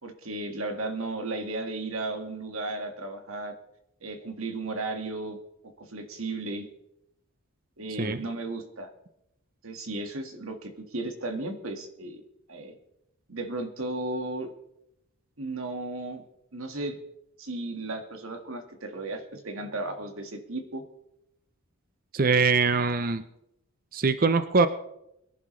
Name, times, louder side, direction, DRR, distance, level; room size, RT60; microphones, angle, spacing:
voice 1, 0.0-3.6 4.0-5.4 5.8-6.7 7.8-8.9 9.6-12.2 12.5-12.8 13.3-14.5 15.4-16.2 16.5-17.0 17.4-20.8, right 2 dB, 70° right, 5 dB, 1.7 m, -34 dB
voice 2, 22.1-23.2 23.9-24.7, right 4 dB, 40° right, 11 dB, 0.6 m, -23 dB
22.5 x 11.0 x 3.2 m, 0.82 s
head